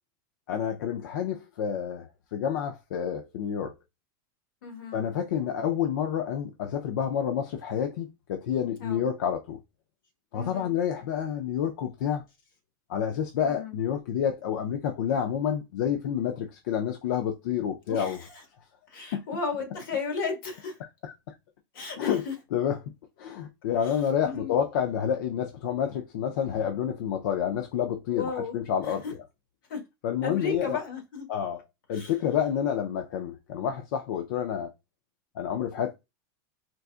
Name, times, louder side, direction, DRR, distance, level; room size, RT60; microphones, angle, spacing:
voice 1, 0.5-3.7 4.9-9.6 10.3-12.2 12.9-18.2 19.1-19.3 21.0-21.1 22.0-22.3 22.5-22.8 23.2-29.0 30.0-30.8 31.3-31.6 31.9-34.7 35.4-35.9, left 8 dB, 65° left, 0.5 m, -29 dB
voice 2, 4.6-5.0 8.8-9.0 10.3-10.7 13.4-13.7 17.9-18.4 18.9-20.8 21.7-22.3 23.8-24.0 24.2-24.5 28.1-29.1 29.7-29.8 30.2-31.2 31.9-32.1, left 4 dB, 80° left, 1.6 m, -35 dB
4.0 x 2.3 x 2.4 m
supercardioid pair, 170°, 11 cm